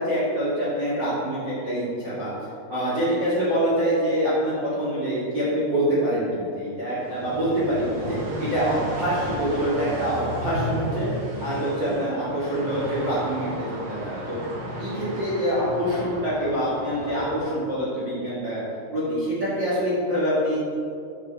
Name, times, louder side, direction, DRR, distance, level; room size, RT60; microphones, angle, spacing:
voice 1, 0.0-2.3 2.7-11.1 11.4-14.4 14.8-18.6 18.9-20.6, equal, 60° right, -10 dB, 1.1 m, -25 dB
sound 1, 7.0-17.3, equal, 90° right, 1.7 m, -34 dB
9.1 x 6.6 x 4.4 m, 2.5 s
omnidirectional pair, 6.0 m